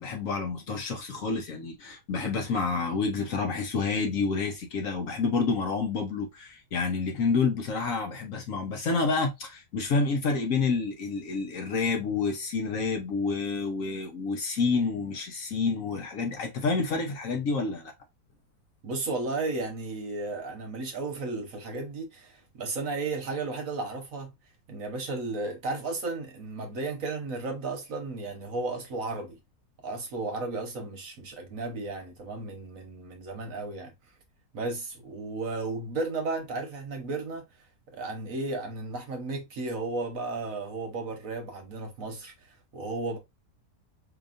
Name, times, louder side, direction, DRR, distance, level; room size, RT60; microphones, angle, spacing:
voice 1, 0.0-17.9, left 4 dB, 60° left, 1.1 m, -28 dB
voice 2, 18.8-24.3 24.7-29.4 29.8-33.9 34.5-37.4 37.9-43.2, right 3 dB, 55° right, 1.2 m, -34 dB
4.9 x 2.9 x 2.5 m
omnidirectional pair, 1.8 m